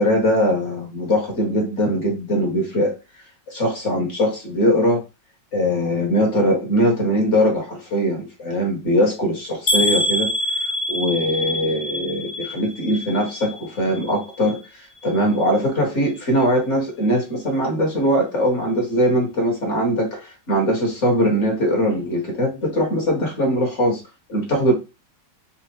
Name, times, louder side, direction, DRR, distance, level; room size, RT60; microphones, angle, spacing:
voice 1, 0.0-2.9 3.5-5.0 5.5-10.3 10.9-24.0 24.3-24.7, equal, 40° left, 0 dB, 1.7 m, -21 dB
sound 1, 9.7-13.6 13.9-14.6 15.0-15.2 15.5-15.6, left 1 dB, 85° left, 1.6 m, -25 dB
4.3 x 2.3 x 4.4 m, 0.27 s
omnidirectional pair, 1.9 m